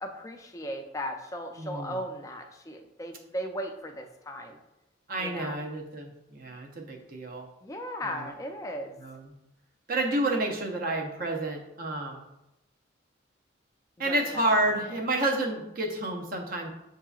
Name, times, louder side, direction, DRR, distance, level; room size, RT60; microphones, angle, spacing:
voice 1, 0.0-4.6 5.2-5.6 7.6-9.0 14.0-14.7, equal, 15° left, 3 dB, 0.4 m, -37 dB
voice 2, 1.6-2.0 5.1-7.5 8.0-8.3 9.0-9.3 9.9-12.3 14.0-16.7, right 1 dB, 45° right, 1 dB, 0.7 m, -30 dB
7.6 x 2.8 x 2.4 m, 0.89 s
head